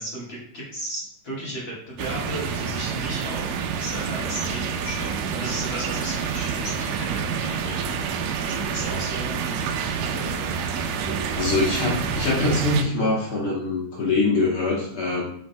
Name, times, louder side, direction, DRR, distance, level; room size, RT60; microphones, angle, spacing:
voice 1, 0.0-7.9 8.4-9.4 10.0-10.4, right 1 dB, 45° left, -6 dB, 1.9 m, -35 dB
sound 1, 2.0-12.8, right 6 dB, 85° right, 2.3 m, -28 dB
voice 2, 11.3-15.2, left 2 dB, 60° left, -4 dB, 1.5 m, -23 dB
7.3 x 6.1 x 2.2 m, 0.65 s
omnidirectional pair, 3.9 m